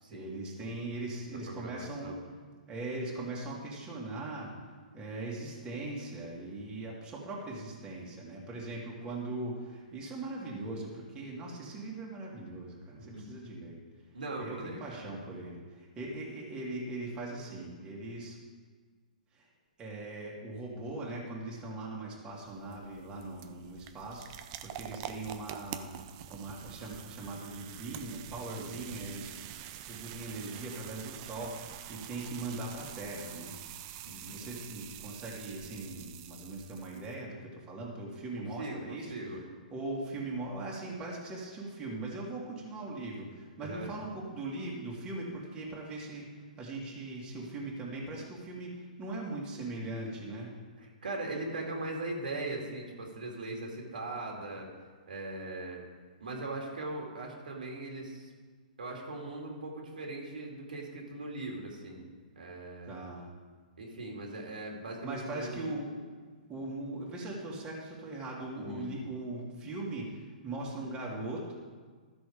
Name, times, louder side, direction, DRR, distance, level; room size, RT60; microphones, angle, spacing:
voice 1, 0.1-2.2 2.7-13.8 14.4-18.4 19.3-19.5 19.8-29.3 29.9-33.5 34.3-39.4 39.7-50.5 62.9-63.3 65.0-66.0 66.5-71.5, right 2 dB, 20° right, -4 dB, 2.1 m, -40 dB
voice 2, 1.3-2.2 13.0-13.2 14.1-15.1 34.0-34.4 38.4-39.4 43.6-43.9 51.0-54.7 55.1-55.8 56.2-58.3 58.8-62.1 62.4-63.0 63.8-65.7 68.6-68.9, right 2 dB, 85° right, 0 dB, 2.4 m, -40 dB
sound 1, 22.3-37.2, right 11 dB, 35° right, 0.5 m, -46 dB
13.0 x 6.2 x 5.0 m, 1.5 s
hypercardioid pair, 140°, 5 cm